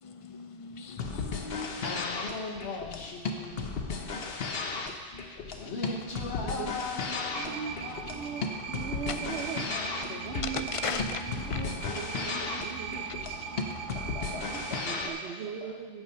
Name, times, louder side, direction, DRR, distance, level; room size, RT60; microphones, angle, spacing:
voice 1, 0.0-2.0 5.1-5.3 10.5-12.1, left 6 dB, 45° left, 8 dB, 0.4 m, -38 dB
sound 1, 0.9-15.1, left 4 dB, 65° left, 1.0 m, -35 dB
voice 2, 1.4-3.8 4.2-4.4 5.2-8.1 9.2-10.4 13.9-15.7, left 3 dB, 90° left, 1 dB, 1.5 m, -40 dB
sound 2, 7.3-15.2, right 6 dB, 50° right, 1.1 m, -39 dB
voice 3, 7.3-7.8 8.1-9.7 10.2-13.5 14.7-16.0, right 7 dB, 80° right, 7 dB, 0.9 m, -40 dB
8.0 x 7.9 x 5.5 m, 1.5 s
omnidirectional pair, 1.1 m